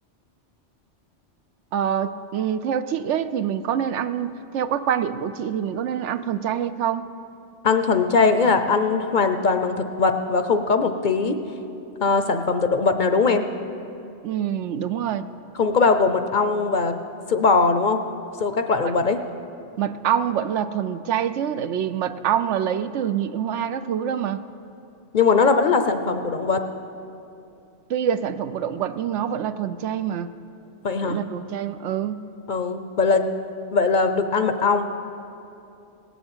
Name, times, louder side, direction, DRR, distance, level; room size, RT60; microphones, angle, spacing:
voice 1, 1.7-7.1 14.2-15.3 18.8-18.9 19.8-24.4 27.9-30.3 31.0-32.3, right 9 dB, 80° right, 12 dB, 0.9 m, -26 dB
voice 2, 7.6-11.4 12.0-13.5 15.5-17.0 17.3-18.0 18.4-19.2 25.1-26.6 30.8-31.2 32.5-33.3 33.7-34.9, left 4 dB, 50° left, 8 dB, 0.7 m, -20 dB
18.0 x 7.1 x 8.8 m, 2.7 s
omnidirectional pair, 1.2 m